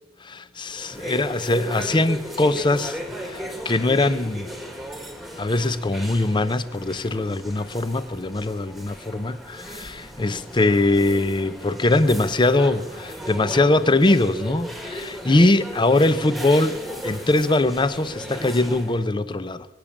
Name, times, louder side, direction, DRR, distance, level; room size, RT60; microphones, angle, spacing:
voice 1, 0.2-4.5 5.4-19.7, left 2 dB, 25° left, 0.6 m, -22 dB
sound 1, 0.6-19.1, equal, ahead, 1.6 m, -36 dB
23.0 x 8.6 x 7.3 m
head